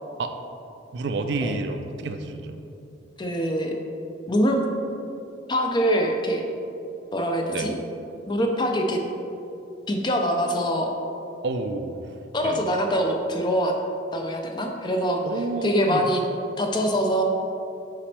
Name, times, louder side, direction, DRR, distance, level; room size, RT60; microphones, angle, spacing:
voice 1, 0.9-2.6 7.5-7.7 11.4-12.0 12.4-12.6 15.2-16.1, right 3 dB, 60° right, 7 dB, 0.4 m, -29 dB
voice 2, 3.2-3.7 4.3-4.6 5.5-6.4 7.1-7.7 8.3-9.0 9.9-10.9 12.3-13.7 14.1-15.2 15.6-16.2 16.6-17.2, equal, 25° left, 2 dB, 0.5 m, -24 dB
5.6 x 5.2 x 3.3 m, 2.8 s
head